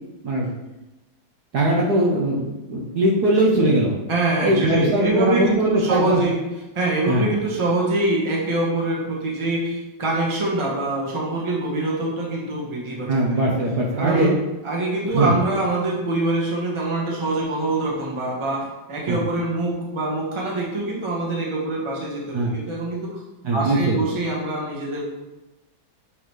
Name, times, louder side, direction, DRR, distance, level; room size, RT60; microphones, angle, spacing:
voice 1, 1.5-3.9 4.4-6.2 7.1-7.3 13.1-14.3 15.1-15.4 19.1-19.2 22.3-22.5 23.4-24.0, right 1 dB, 60° right, -2 dB, 1.3 m, -20 dB
voice 2, 4.1-6.4 6.7-13.5 14.0-14.4 14.6-23.2 23.5-25.0, right 2 dB, 20° right, -3 dB, 1.0 m, -24 dB
7.7 x 3.9 x 3.1 m, 1.0 s
omnidirectional pair, 2.1 m